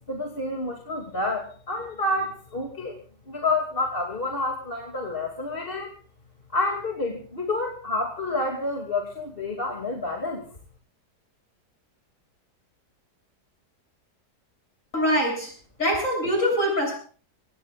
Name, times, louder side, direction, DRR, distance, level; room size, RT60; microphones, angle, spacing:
voice 1, 0.1-3.0 3.3-5.9 6.5-10.4, left 2 dB, 30° left, 1 dB, 2.8 m, -29 dB
voice 2, 14.9-15.5 15.8-17.0, equal, 50° left, 1 dB, 8.1 m, -23 dB
26.5 x 19.0 x 2.5 m, 0.42 s
omnidirectional pair, 1.8 m